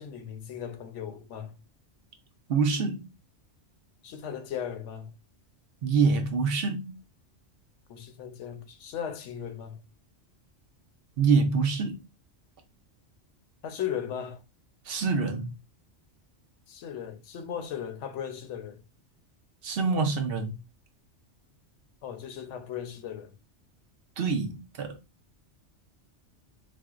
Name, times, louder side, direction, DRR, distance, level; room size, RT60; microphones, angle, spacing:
voice 1, 0.0-1.5 4.0-5.1 7.9-9.8 13.6-14.4 16.7-18.8 22.0-23.3, left 9 dB, 85° left, 0.9 m, -37 dB
voice 2, 2.5-3.1 5.8-6.9 11.2-12.0 14.9-15.5 19.6-20.5 24.2-25.0, right 4 dB, 60° right, 0.7 m, -26 dB
4.3 x 2.0 x 2.3 m
omnidirectional pair, 1.2 m